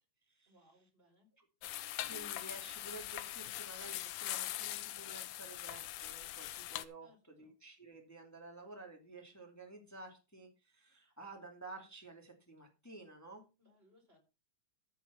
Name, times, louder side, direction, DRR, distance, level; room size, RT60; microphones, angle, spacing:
voice 1, 0.5-1.3 7.0-7.6 13.6-14.2, left 1 dB, 20° right, 2 dB, 4.1 m, -68 dB
sound 1, 1.6-6.8, left 14 dB, 90° left, 2.3 m, -42 dB
voice 2, 2.1-7.1 7.4-13.4, right 2 dB, 5° left, 2 dB, 1.9 m, -52 dB
14.0 x 5.6 x 5.7 m, 0.29 s
omnidirectional pair, 3.5 m